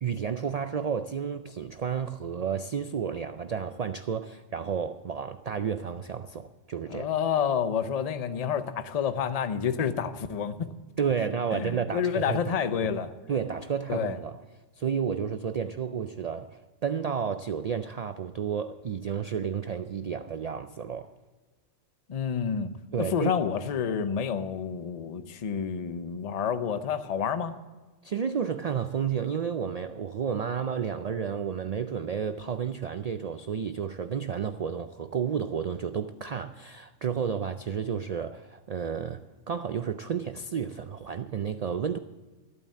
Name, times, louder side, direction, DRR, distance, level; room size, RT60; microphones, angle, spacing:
voice 1, 0.0-7.1 11.0-14.4 14.8-21.1 22.9-23.3 28.0-42.0, right 7 dB, 80° right, 0.3 m, -31 dB
voice 2, 6.9-10.7 11.5-13.1 13.9-14.2 22.1-22.7 23.0-27.5, left 7 dB, 40° left, 0.7 m, -29 dB
14.0 x 9.0 x 7.4 m
omnidirectional pair, 1.3 m